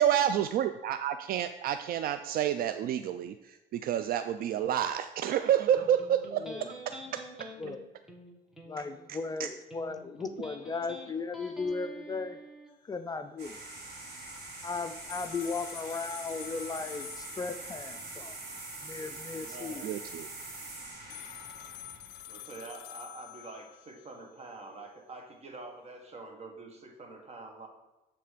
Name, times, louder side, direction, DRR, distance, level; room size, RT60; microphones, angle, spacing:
voice 1, 0.0-7.0 9.1-9.5 19.8-20.3, right 10 dB, 60° right, 10 dB, 0.4 m, -29 dB
Electric guitar, 5.8-12.7, right 1 dB, 5° right, 1.3 m, -47 dB
voice 2, 6.3-6.7 7.6-7.9 8.7-12.4 12.9-13.6 14.6-18.4 18.8-19.8, left 4 dB, 25° left, 8 dB, 0.4 m, -36 dB
sound 1, 13.4-22.6, right 2 dB, 80° right, 2.2 m, -44 dB
sound 2, 15.1-18.0 21.1-24.1, left 13 dB, 80° left, 0.5 m, -47 dB
voice 3, 19.3-19.9 22.3-27.7, right 3 dB, 40° right, 3 dB, 1.6 m, -46 dB
9.6 x 3.4 x 5.0 m, 1.0 s
cardioid pair, 110°, 17 cm